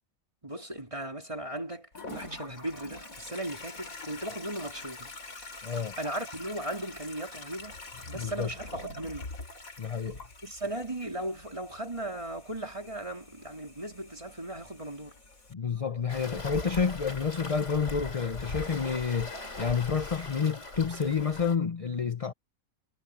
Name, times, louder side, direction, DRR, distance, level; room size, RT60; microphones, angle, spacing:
voice 1, 0.4-5.1 6.0-7.8 8.1-9.3 10.4-15.2, right 1 dB, 20° right, 3.7 m, -37 dB
Toilet flush, 1.9-15.5, left 2 dB, 85° left, 3.7 m, -45 dB
voice 2, 5.6-6.0 8.1-8.5 9.8-10.2 15.5-22.3, left 6 dB, 30° left, 0.7 m, -29 dB
Waves surf, 16.1-21.6, left 2 dB, 55° left, 4.0 m, -40 dB
omnidirectional pair, 1.4 m